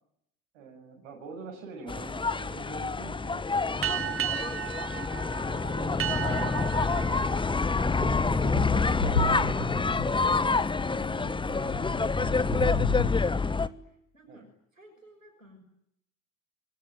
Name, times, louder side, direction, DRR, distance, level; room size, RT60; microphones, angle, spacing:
voice 1, 0.5-4.3 5.6-7.3 8.2-10.3 11.7-12.3 14.3-14.5, right 4 dB, 65° right, 2 dB, 7.2 m, -45 dB
sound 1, 1.9-13.7, left 4 dB, 15° left, 1.2 m, -27 dB
sound 2, 3.8-8.9, right 11 dB, 35° right, 1.9 m, -35 dB
voice 2, 5.3-6.0 10.7-14.4 14.7-15.6, right 2 dB, 85° right, 3 dB, 6.6 m, -54 dB
sound 3, 8.0-13.1, left 2 dB, 90° left, 1.4 m, -34 dB
27.0 x 23.5 x 9.3 m, 0.74 s
figure-of-eight pair, 60°, 38 cm